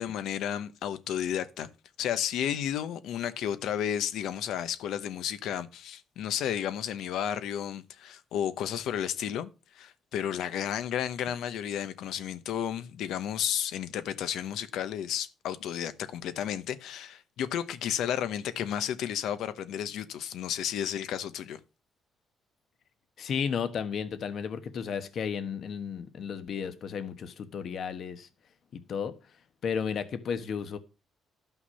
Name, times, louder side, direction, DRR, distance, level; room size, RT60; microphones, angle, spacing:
voice 1, 0.0-1.7 2.0-9.5 9.7-21.6, left 10 dB, 80° left, 1.0 m, -32 dB
voice 2, 23.2-28.3 28.7-29.4 29.6-30.8, left 7 dB, 60° left, 1.2 m, -33 dB
11.5 x 5.9 x 5.6 m
cardioid pair, 90°, 0 cm